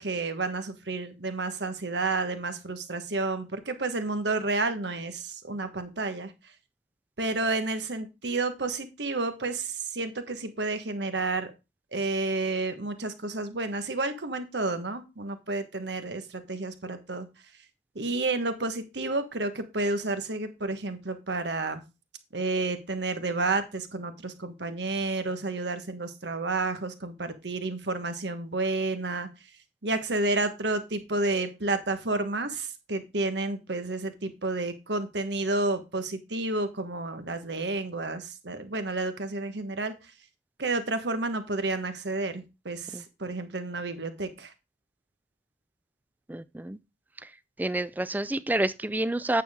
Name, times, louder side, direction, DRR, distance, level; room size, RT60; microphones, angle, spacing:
voice 1, 0.0-6.3 7.2-11.5 11.9-17.3 17.9-21.8 22.3-29.3 29.8-39.9 40.6-44.5, right 3 dB, 75° right, 1.4 m, -30 dB
voice 2, 46.3-46.8 47.2-47.3 47.6-49.4, right 1 dB, 10° right, 0.3 m, -28 dB
9.1 x 6.9 x 3.5 m
head